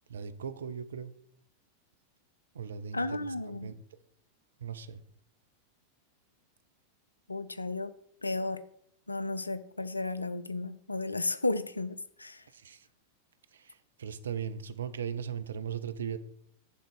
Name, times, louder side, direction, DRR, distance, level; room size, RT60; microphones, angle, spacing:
voice 1, 0.1-1.1 2.5-3.8 4.6-5.0 12.5-12.9 13.5-16.2, right 7 dB, 65° right, 0.6 m, -38 dB
voice 2, 2.9-3.7 7.3-7.9 8.2-8.6 9.1-12.4, left 2 dB, 80° left, 0.5 m, -33 dB
10.5 x 3.9 x 6.2 m
figure-of-eight pair, 90°, 0 cm